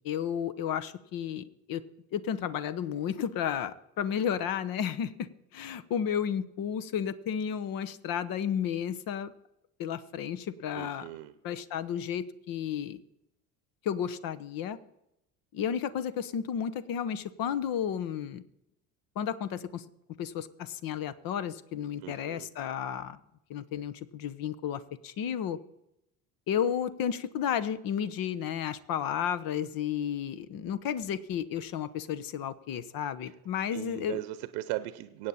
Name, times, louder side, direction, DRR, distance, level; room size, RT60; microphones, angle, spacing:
voice 1, 0.0-1.8 2.1-9.3 9.8-11.1 11.4-13.0 13.8-14.8 15.5-18.4 19.2-19.8 20.2-23.2 23.5-25.6 26.5-34.2, left 8 dB, 50° left, 14 dB, 1.0 m, -32 dB
voice 2, 10.8-11.3 22.0-22.5 33.7-35.3, right 16 dB, 65° right, 13 dB, 0.9 m, -38 dB
23.5 x 8.8 x 4.3 m, 0.83 s
hypercardioid pair, 60°, 44 cm